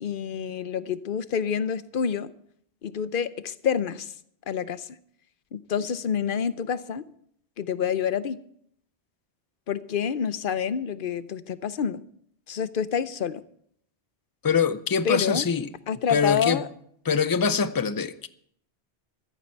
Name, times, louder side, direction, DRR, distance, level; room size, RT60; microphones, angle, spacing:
voice 1, 0.0-2.3 2.8-4.1 4.5-5.0 5.5-7.0 7.6-8.4 9.7-12.0 12.5-13.4 15.0-15.5 15.9-16.7, left 7 dB, 55° left, 0.9 m, -28 dB
voice 2, 14.4-15.7 16.1-16.6 17.1-18.3, left 6 dB, 25° left, 0.5 m, -24 dB
14.5 x 14.0 x 4.6 m
omnidirectional pair, 1.1 m